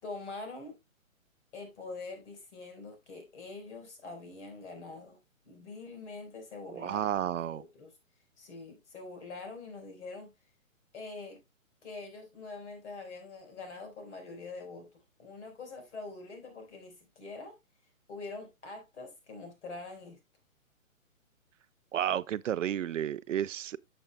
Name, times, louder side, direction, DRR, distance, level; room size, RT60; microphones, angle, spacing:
voice 1, 0.0-0.7 1.5-5.2 5.4-7.9 8.4-10.3 10.9-11.4 11.8-14.9 15.2-17.5 18.1-20.2, left 3 dB, 55° left, 4.4 m, -44 dB
voice 2, 6.7-7.6 21.9-23.8, right 10 dB, 65° right, 0.5 m, -31 dB
13.5 x 7.2 x 2.2 m
hypercardioid pair, 145°, 41 cm